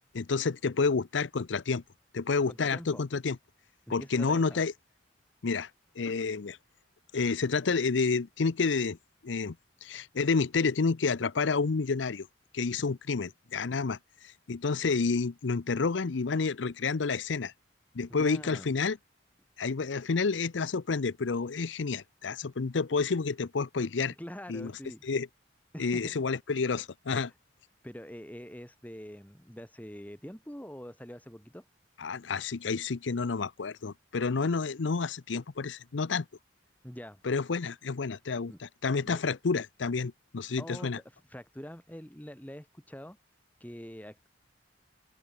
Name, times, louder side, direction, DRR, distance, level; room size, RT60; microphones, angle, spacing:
voice 1, 0.1-1.8 2.1-3.4 3.9-4.7 5.4-5.7 6.0-6.6 7.1-9.0 9.2-9.6 9.8-12.3 12.5-14.0 14.5-17.5 17.9-19.0 19.6-24.1 24.5-24.7 25.0-25.3 25.8-27.3 32.0-36.3 37.2-41.0, left 4 dB, 80° left, 0.6 m, -29 dB
voice 2, 2.5-3.0 3.9-4.6 18.2-18.7 24.2-25.0 25.7-26.1 27.2-27.3 27.8-31.7 36.8-37.2 38.5-38.6 39.0-39.2 40.6-43.2 43.6-44.3, equal, 10° left, 2.5 m, -44 dB
head